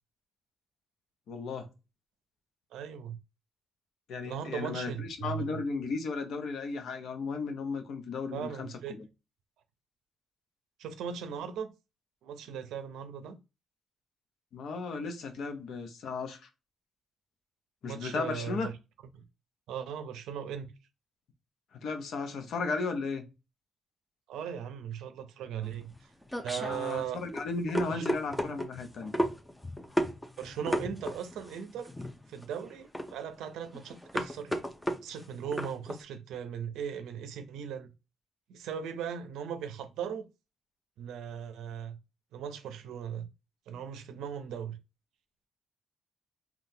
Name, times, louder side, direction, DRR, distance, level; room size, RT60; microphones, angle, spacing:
voice 1, 1.3-1.7 4.1-8.7 14.5-16.4 17.8-18.7 21.8-23.3 26.6-29.2, left 4 dB, 70° left, 0.7 m, -35 dB
voice 2, 2.7-3.2 4.2-5.6 8.3-9.0 10.8-11.7 12.2-13.4 17.8-18.7 19.1-19.2 19.7-20.7 24.3-27.2 27.9-28.0 30.4-31.9 32.3-34.6 35.0-37.9 38.5-40.3 41.0-42.0 42.3-43.3 43.7-44.8, right 8 dB, 85° right, 0.5 m, -38 dB
sound 1, 25.6-36.0, equal, 10° left, 0.6 m, -34 dB
3.7 x 2.3 x 2.7 m
cardioid pair, 90°, 0 cm